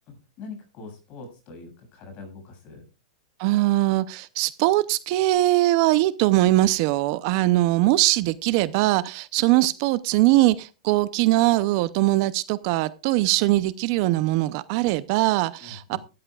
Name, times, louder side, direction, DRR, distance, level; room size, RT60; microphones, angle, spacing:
voice 1, 0.1-2.9 15.6-16.0, left 4 dB, 30° left, 7.4 m, -43 dB
voice 2, 3.4-16.0, right 17 dB, 40° right, 0.6 m, -21 dB
16.5 x 13.5 x 2.4 m
supercardioid pair, 155°, 4 cm